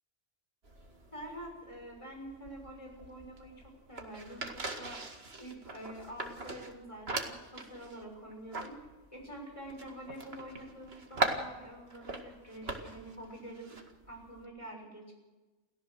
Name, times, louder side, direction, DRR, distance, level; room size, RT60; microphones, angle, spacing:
sound 1, 0.6-14.4, right 2 dB, 55° right, 2.3 m, -41 dB
voice 1, 1.1-3.6 3.9-5.0 5.4-8.8 9.1-13.8 14.1-15.1, right 1 dB, 25° left, 1 dB, 6.7 m, -46 dB
29.0 x 15.5 x 6.4 m, 1.2 s
omnidirectional pair, 1.2 m